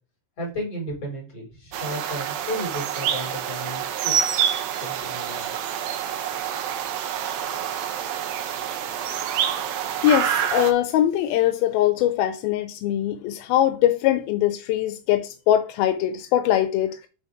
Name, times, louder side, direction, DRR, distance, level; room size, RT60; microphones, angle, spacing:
voice 1, 0.4-4.1 4.8-5.5, equal, 40° left, 5.7 m, -33 dB
sound 1, 1.7-10.7, right 9 dB, 80° right, 2.6 m, -27 dB
voice 2, 10.0-17.1, left 12 dB, 85° left, 2.5 m, -22 dB
9.7 x 4.2 x 3.5 m
omnidirectional pair, 4.2 m